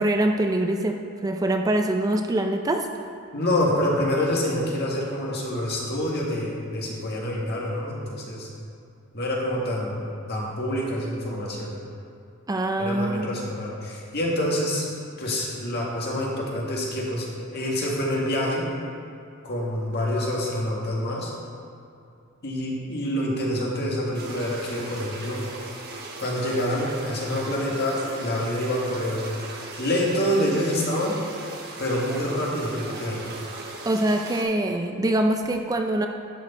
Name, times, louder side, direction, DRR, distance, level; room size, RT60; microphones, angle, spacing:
voice 1, 0.0-2.9 12.5-13.3 33.8-36.1, right 1 dB, 15° right, 4 dB, 0.4 m, -24 dB
voice 2, 3.3-8.5 9.1-11.7 12.8-14.9 15.2-18.7 19.4-21.3 22.4-25.4 26.2-29.3 29.8-31.2 31.8-33.2, left 1 dB, 50° left, -3 dB, 1.7 m, -27 dB
sound 1, 24.1-34.4, right 3 dB, 50° right, 1.3 m, -38 dB
11.5 x 6.2 x 4.2 m, 2.6 s
head